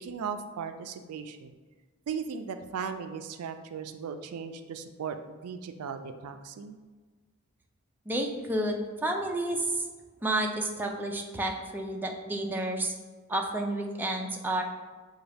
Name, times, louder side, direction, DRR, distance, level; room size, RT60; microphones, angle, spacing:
voice 1, 0.0-1.5 2.1-6.8, right 6 dB, 85° right, 8 dB, 0.4 m, -37 dB
voice 2, 8.1-9.8 10.2-12.9 13.3-14.6, right 1 dB, 10° right, 1 dB, 0.4 m, -30 dB
6.8 x 2.3 x 3.3 m, 1.4 s
head